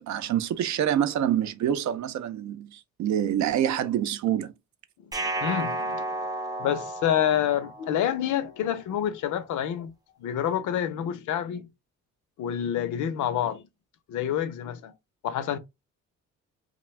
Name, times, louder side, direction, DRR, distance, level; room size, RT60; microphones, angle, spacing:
voice 1, 0.0-4.5, right 10 dB, 70° right, 0.5 m, -26 dB
sound 1, 5.1-8.2, right 2 dB, 15° right, 0.4 m, -32 dB
voice 2, 5.4-6.1 6.6-9.9 10.2-11.7 12.4-13.6 14.1-14.9 15.2-15.6, left 10 dB, 75° left, 0.6 m, -27 dB
2.5 x 2.2 x 3.1 m
cardioid pair, 90°, 30 cm